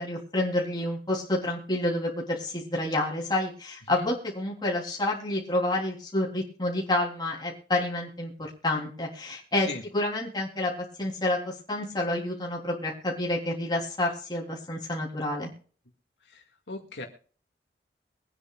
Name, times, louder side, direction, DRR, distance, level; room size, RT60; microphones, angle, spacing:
voice 1, 0.0-9.7 9.9-10.7 11.0-15.5, left 1 dB, 25° left, -2 dB, 3.5 m, -29 dB
voice 2, 16.2-17.1, left 2 dB, 80° left, 2 dB, 2.1 m, -39 dB
23.5 x 9.8 x 2.4 m, 0.41 s
head